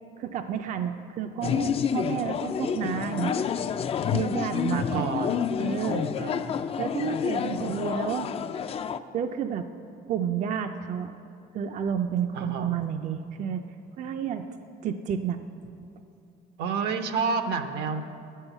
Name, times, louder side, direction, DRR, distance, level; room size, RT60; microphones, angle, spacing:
voice 1, 0.2-3.4 4.1-5.1 5.6-6.1 6.8-8.3 9.1-9.7 10.1-11.1 11.5-13.6 14.0-14.5 14.8-15.4, right 8 dB, 45° right, 7 dB, 0.4 m, -30 dB
sound 1, 1.4-9.0, left 7 dB, 35° left, 0.4 m, -29 dB
voice 2, 4.7-5.4 6.2-6.7 12.3-12.7 16.6-18.0, right 5 dB, 75° right, 8 dB, 0.8 m, -30 dB
11.0 x 5.6 x 8.0 m, 2.6 s
cardioid pair, 110°, 17 cm